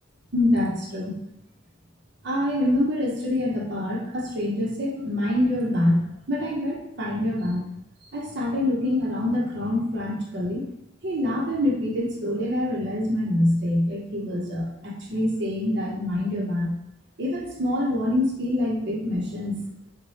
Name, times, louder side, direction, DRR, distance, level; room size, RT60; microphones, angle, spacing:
voice 1, 0.3-1.2 2.2-6.0 6.3-7.6 8.1-10.6 11.0-16.7 17.2-19.6, left 1 dB, 65° right, -2 dB, 0.7 m, -25 dB
4.1 x 2.2 x 3.1 m, 0.82 s
head